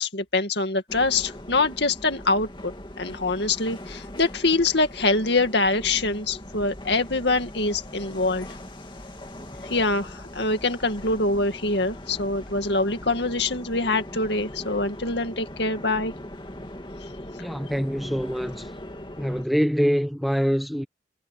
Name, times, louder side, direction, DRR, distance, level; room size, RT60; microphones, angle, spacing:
voice 1, 0.0-8.5 9.6-16.1, left 3 dB, 60° left, 2.3 m, -24 dB
sound 1, 0.9-19.5, left 1 dB, 25° left, 2.7 m, -40 dB
voice 2, 17.4-18.7 19.2-20.8, equal, ahead, 0.9 m, -24 dB
head